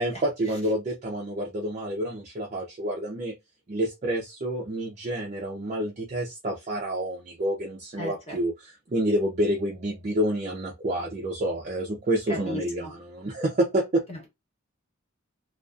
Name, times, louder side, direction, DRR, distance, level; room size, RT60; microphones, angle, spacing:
voice 1, 0.0-3.3 3.7-14.0, right 1 dB, 35° right, 0.5 m, -28 dB
voice 2, 8.0-8.4 12.3-12.9 14.1-14.3, equal, 30° left, 0.9 m, -36 dB
2.4 x 2.3 x 2.4 m
head